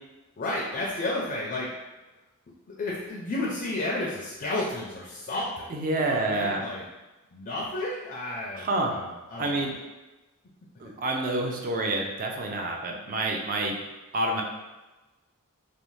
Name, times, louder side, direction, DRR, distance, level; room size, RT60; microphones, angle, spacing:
voice 1, 0.4-1.7 2.8-6.9 7.3-9.8, left 2 dB, 40° left, -3 dB, 0.4 m, -32 dB
voice 2, 5.7-6.6 8.6-8.9 9.4-9.7 10.8-13.7 14.1-14.4, right 2 dB, 40° right, 1 dB, 0.4 m, -28 dB
2.6 x 2.0 x 3.1 m, 1.1 s
head